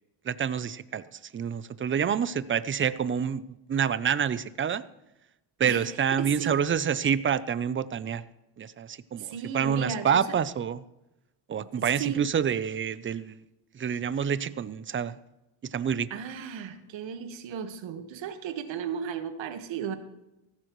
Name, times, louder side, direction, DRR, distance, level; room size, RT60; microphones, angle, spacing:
voice 1, 0.2-4.8 5.6-8.2 8.6-10.8 11.5-13.4 13.7-15.2 15.6-16.1, right 7 dB, 25° right, 15 dB, 0.5 m, -28 dB
voice 2, 6.2-6.6 9.2-10.2 11.6-12.2 16.1-20.0, right 7 dB, 70° right, 8 dB, 1.6 m, -35 dB
16.5 x 14.5 x 3.1 m, 0.94 s
cardioid pair, 120°, 47 cm